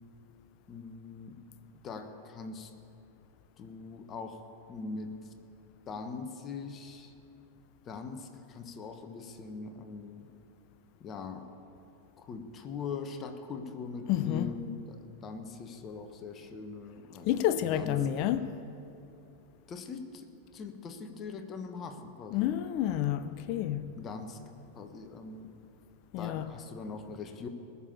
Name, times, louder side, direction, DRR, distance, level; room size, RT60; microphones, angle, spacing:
voice 1, 0.7-1.4 1.8-2.7 3.6-5.3 5.8-7.1 7.8-10.3 11.0-11.5 12.2-17.3 17.6-18.1 19.7-22.6 23.9-24.4 24.7-25.5 26.2-27.5, left 4 dB, 25° left, 1.2 m, -42 dB
voice 2, 14.1-14.5 17.2-18.4 22.3-24.0 26.1-26.5, left 11 dB, 45° left, 0.5 m, -29 dB
20.0 x 7.0 x 8.5 m
figure-of-eight pair, 90°, 0 cm